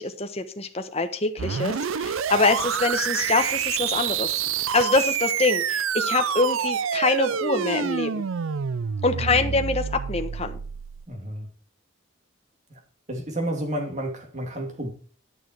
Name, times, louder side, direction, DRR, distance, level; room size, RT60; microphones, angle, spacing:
voice 1, 0.0-4.3 4.7-8.2 9.0-10.6, left 3 dB, 30° left, 1.1 m, -25 dB
sound 1, 1.4-11.1, right 8 dB, 75° right, 0.5 m, -27 dB
voice 2, 9.1-9.6 11.1-11.5 12.7-12.8 13.1-14.9, right 1 dB, 35° right, 2.6 m, -31 dB
12.0 x 6.4 x 4.5 m
head